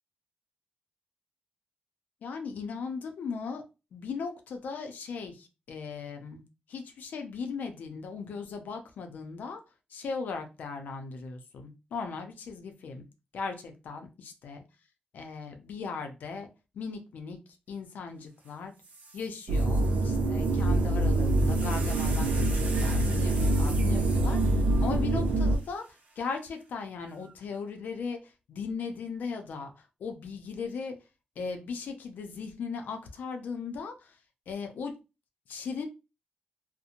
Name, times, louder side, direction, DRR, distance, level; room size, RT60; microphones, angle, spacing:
voice 1, 2.2-3.6 3.9-6.4 6.7-9.6 9.9-13.1 13.3-14.6 15.1-16.5 16.7-17.4 17.7-18.7 19.1-31.0 31.4-34.2 34.5-34.9 35.5-35.9, left 5 dB, 80° left, 5 dB, 0.5 m, -38 dB
sound 1, 18.4-18.5 18.8-26.2 27.1-27.5, right 3 dB, 60° right, 0.7 m, -44 dB
sound 2, 19.5-25.6, right 1 dB, 90° right, 0.3 m, -25 dB
2.8 x 2.1 x 2.5 m, 0.28 s
cardioid pair, 80°, 3 cm